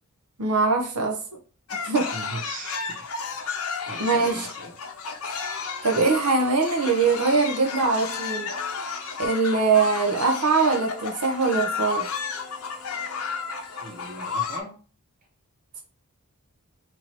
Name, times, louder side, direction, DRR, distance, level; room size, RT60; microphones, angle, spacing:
voice 1, 0.4-1.2 1.8-2.1 4.0-4.5 5.8-8.5 9.2-12.1, right 4 dB, 75° right, 2 dB, 0.7 m, -22 dB
sound 1, 1.7-14.6, left 5 dB, 70° left, 0.7 m, -32 dB
voice 2, 2.1-3.1 3.4-3.6 3.9-4.8 13.8-14.8, right 2 dB, 40° right, 1 dB, 1.0 m, -39 dB
sound 2, 7.4-14.4, equal, ahead, 0.6 m, -50 dB
3.1 x 2.7 x 4.3 m, 0.39 s
head